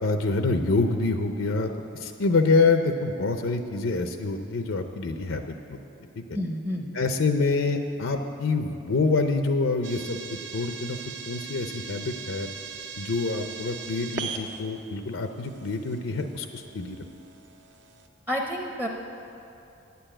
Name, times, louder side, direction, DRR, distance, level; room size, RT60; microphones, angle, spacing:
voice 1, 0.0-5.8 6.2-6.3 6.9-10.2 10.5-11.0 11.3-12.5 13.0-17.0, left 3 dB, 75° left, 6 dB, 0.6 m, -26 dB
voice 2, 6.3-7.0 18.3-18.9, equal, 10° right, 1 dB, 0.6 m, -29 dB
sound 1, 9.8-18.1, right 5 dB, 60° right, 0.7 m, -40 dB
9.4 x 6.9 x 8.8 m, 2.7 s
head